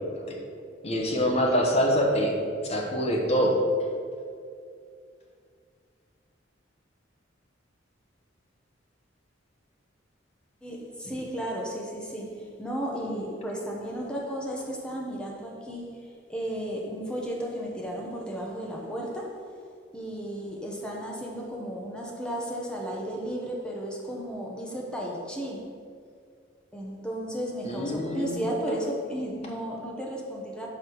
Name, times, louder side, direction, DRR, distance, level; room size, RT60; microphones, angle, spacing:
voice 1, 0.8-2.3 2.6-3.6 27.6-28.4, equal, 35° left, 0 dB, 1.1 m, -25 dB
voice 2, 10.6-16.0 16.3-19.3 19.9-25.6 26.7-30.7, equal, 5° left, -2 dB, 1.1 m, -34 dB
5.3 x 4.9 x 6.3 m, 2.3 s
head